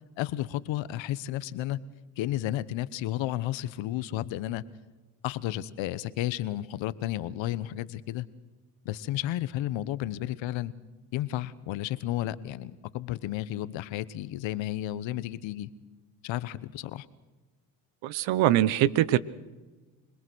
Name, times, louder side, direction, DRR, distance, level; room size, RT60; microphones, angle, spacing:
voice 1, 0.2-1.8 2.2-4.6 5.2-8.3 8.8-10.7 11.1-15.7 16.2-17.1, left 14 dB, 80° left, 17 dB, 1.1 m, -32 dB
voice 2, 18.0-19.2, right 13 dB, 80° right, 18 dB, 1.0 m, -23 dB
26.0 x 20.0 x 6.3 m, 1.2 s
supercardioid pair, 65°, 45 cm